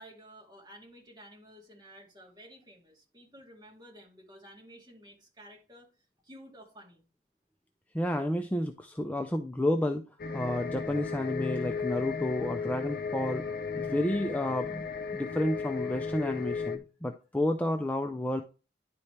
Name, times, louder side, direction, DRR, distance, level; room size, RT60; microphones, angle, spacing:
voice 1, 0.0-5.9 6.2-7.0, equal, 20° right, -2 dB, 2.4 m, -52 dB
voice 2, 7.9-10.0 10.3-13.4 13.8-14.9 15.1-18.4, left 1 dB, 10° left, 4 dB, 0.4 m, -30 dB
sound 1, 10.2-16.8, left 5 dB, 55° left, 0.7 m, -35 dB
10.5 x 4.3 x 3.2 m, 0.33 s
head